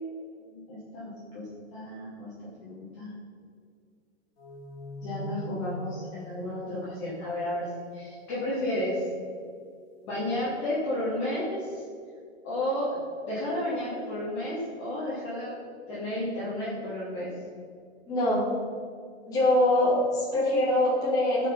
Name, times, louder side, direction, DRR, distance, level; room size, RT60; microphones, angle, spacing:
voice 1, 0.4-2.3 2.6-3.2 5.0-9.0 10.0-11.8 12.4-13.0 13.3-15.5 15.9-17.3, left 1 dB, 25° left, -10 dB, 2.7 m, -32 dB
sound 1, 4.4-7.8, right 1 dB, 55° left, 2.7 m, -41 dB
voice 2, 18.1-18.5 19.3-21.5, left 1 dB, 10° left, -9 dB, 2.7 m, -23 dB
17.0 x 5.9 x 5.7 m, 2.2 s
hypercardioid pair, 180°, 34 cm